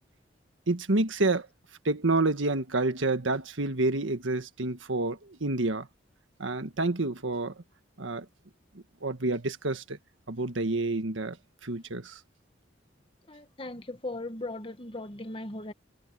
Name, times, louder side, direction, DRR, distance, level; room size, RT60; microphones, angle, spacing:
voice 1, 0.7-1.5 1.8-5.9 6.4-7.5 8.0-8.2 9.0-10.0 10.3-11.4 11.6-12.2, right 2 dB, 75° right, 1.6 m, -28 dB
voice 2, 13.3-15.7, left 2 dB, 25° left, 1.4 m, -38 dB
head